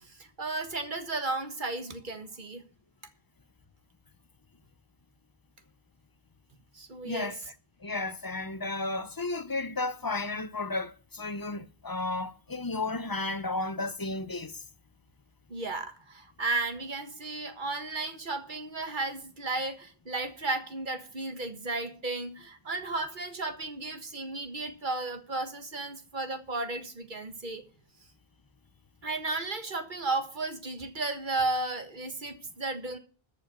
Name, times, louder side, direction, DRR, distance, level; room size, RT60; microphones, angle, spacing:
voice 1, 0.0-2.6 6.7-7.3 15.5-27.6 29.0-33.0, right 3 dB, 50° right, 1.7 m, -34 dB
voice 2, 7.0-7.4 7.8-14.6, left 2 dB, 25° left, 0.6 m, -33 dB
13.5 x 5.3 x 8.9 m
omnidirectional pair, 1.0 m